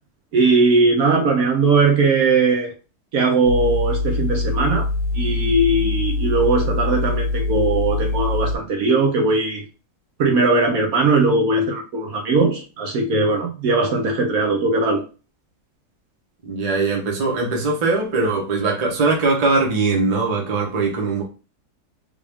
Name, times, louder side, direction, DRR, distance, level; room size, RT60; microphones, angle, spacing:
voice 1, 0.3-2.7 3.1-4.9 5.1-9.7 10.2-15.0, right 3 dB, 65° right, 1.1 m, -19 dB
sound 1, 3.5-8.6, left 2 dB, 60° left, 1.1 m, -23 dB
voice 2, 16.4-21.2, right 3 dB, 30° right, 0.8 m, -21 dB
3.6 x 2.5 x 3.4 m
omnidirectional pair, 1.8 m